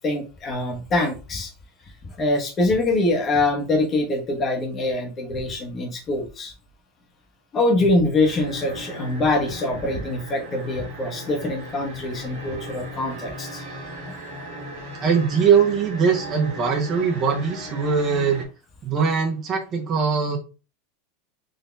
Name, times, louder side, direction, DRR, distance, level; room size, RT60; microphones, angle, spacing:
voice 1, 0.0-1.5 2.2-6.5 7.5-13.6, left 2 dB, 30° left, 2 dB, 1.1 m, -24 dB
sound 1, 8.2-18.5, right 1 dB, 60° right, 1.6 m, -37 dB
voice 2, 15.0-18.4 18.8-20.4, right 6 dB, 35° right, 1 dB, 1.3 m, -21 dB
4.1 x 2.8 x 3.3 m, 0.33 s
hypercardioid pair, 110°, 0 cm